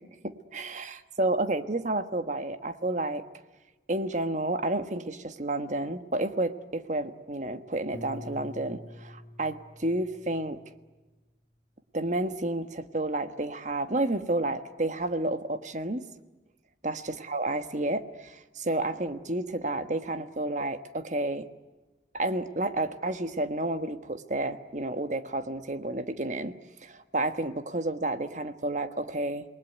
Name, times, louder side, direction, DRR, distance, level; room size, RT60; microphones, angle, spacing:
voice 1, 0.2-3.2 3.9-10.6 11.9-16.0 16.8-21.5 22.1-26.6 26.8-29.4, right 2 dB, 40° right, 10 dB, 1.4 m, -30 dB
Piano, 7.9-10.9, left 1 dB, 10° left, 5.3 m, -45 dB
28.0 x 20.5 x 9.4 m, 1.2 s
head